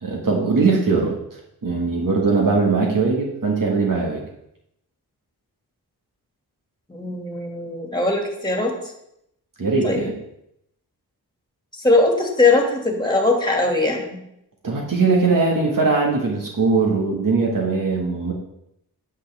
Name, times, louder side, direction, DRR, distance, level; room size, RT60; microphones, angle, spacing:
voice 1, 0.0-4.2 9.6-10.1 14.6-18.3, right 4 dB, 55° right, -2 dB, 1.8 m, -20 dB
voice 2, 6.9-8.7 9.8-10.1 11.8-14.2, left 2 dB, 10° left, 1 dB, 2.2 m, -20 dB
9.0 x 6.4 x 3.5 m, 0.78 s
cardioid pair, 50°, 40 cm